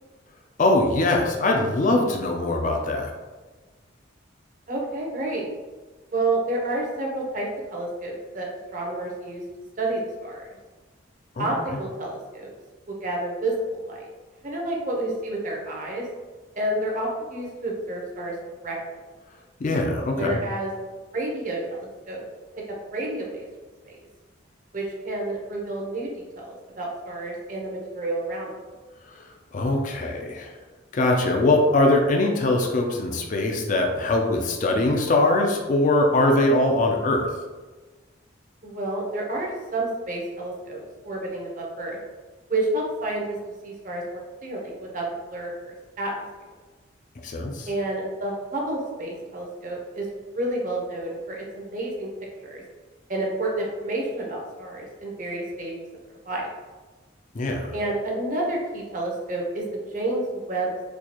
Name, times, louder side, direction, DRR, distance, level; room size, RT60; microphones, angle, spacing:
voice 1, 0.6-3.1 11.4-11.5 19.6-20.4 29.1-29.2 29.5-30.5 30.9-37.3 47.2-47.7 57.3-57.7, left 2 dB, 40° left, 2 dB, 0.4 m, -22 dB
voice 2, 4.7-5.5 6.1-9.4 9.8-10.5 11.4-12.5 12.9-14.1 14.4-16.0 16.5-18.3 18.6-18.7 20.1-20.7 21.1-22.2 22.9-23.5 23.8-24.0 24.7-28.5 38.6-42.0 42.5-43.2 43.6-45.0 45.3-46.2 47.7-50.1 50.3-52.1 52.4-52.6 53.1-55.7 56.2-56.5 57.7-60.7, right 2 dB, 40° right, -2 dB, 0.8 m, -29 dB
4.4 x 2.4 x 2.9 m, 1.3 s
head